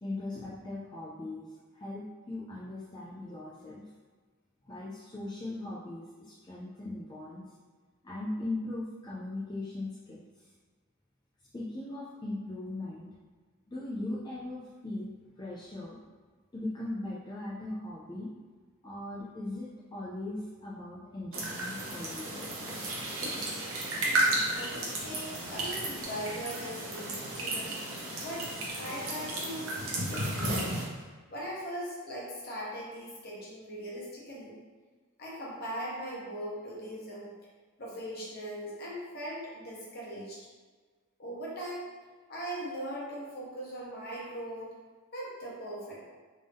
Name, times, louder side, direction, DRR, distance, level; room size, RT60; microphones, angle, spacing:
voice 1, 0.0-3.9 4.6-7.5 8.0-10.5 11.5-13.1 13.7-16.0 16.5-18.3 18.8-22.4 23.3-23.5, left 2 dB, 20° left, -7 dB, 0.4 m, -39 dB
sound 1, 21.3-30.8, right 1 dB, 70° right, 0.9 m, -33 dB
voice 2, 24.1-27.8 28.2-28.5 28.8-34.6 35.2-37.3 37.8-40.4 41.2-41.9 42.3-44.7 45.1-46.0, equal, 45° left, -5 dB, 1.0 m, -40 dB
3.6 x 2.6 x 3.4 m, 1.4 s
head